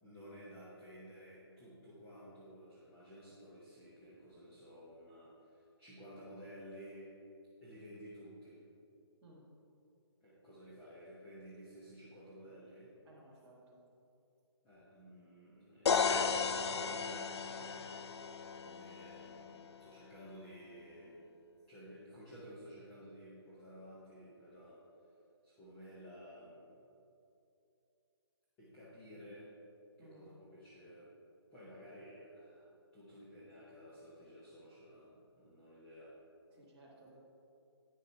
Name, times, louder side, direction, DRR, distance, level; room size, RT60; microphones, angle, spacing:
voice 1, 0.0-7.1 7.6-8.6 10.2-12.9 14.6-17.9 18.6-21.2 21.7-24.8 25.4-26.8 28.6-29.5 30.0-31.1 31.5-36.1, equal, 10° left, -10 dB, 0.8 m, -53 dB
voice 2, 13.0-13.8 30.0-30.3 36.5-37.2, right 1 dB, 10° right, -9 dB, 1.5 m, -59 dB
sound 1, 15.9-19.7, left 5 dB, 80° left, 0.5 m, -35 dB
9.9 x 6.5 x 4.6 m, 2.7 s
hypercardioid pair, 175°, 14 cm